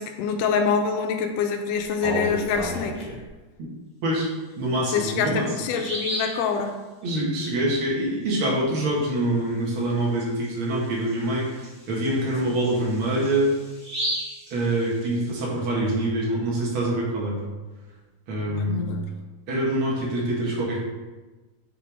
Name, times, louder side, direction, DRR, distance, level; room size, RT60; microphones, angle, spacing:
voice 1, 0.0-3.1 4.8-6.8 12.5-12.6 18.5-19.2, left 6 dB, 80° left, 4 dB, 1.8 m, -26 dB
Bird vocalization bird call bird song, 1.8-3.3 4.7-4.8 5.3-5.4 5.7-6.4 9.9-10.0 10.4-10.5 11.1-15.3, equal, 20° right, 1.0 m, -33 dB
voice 2, 4.6-5.5 7.0-11.6 11.9-13.5 14.5-17.4 18.3-18.8 19.5-20.8, right 1 dB, 45° right, -5 dB, 1.9 m, -25 dB
7.9 x 4.6 x 3.5 m, 1.2 s
omnidirectional pair, 4.3 m